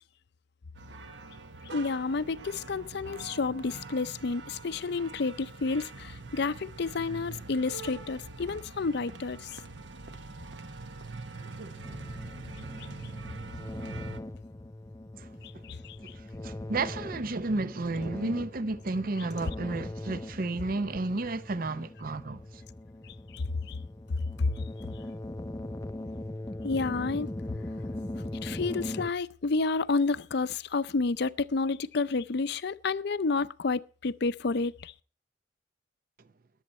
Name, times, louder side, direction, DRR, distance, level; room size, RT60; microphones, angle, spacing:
sound 1, 0.8-14.2, right 3 dB, 65° right, 1.1 m, -44 dB
voice 1, 1.7-9.6 15.6-16.0 23.3-23.8 24.6-24.7 26.6-27.3 28.4-34.9, left 4 dB, 60° left, 0.6 m, -30 dB
sound 2, 11.8-29.1, left 1 dB, 15° left, 0.5 m, -40 dB
voice 2, 16.0-22.6, right 2 dB, 50° right, 0.7 m, -32 dB
21.5 x 7.9 x 4.3 m
head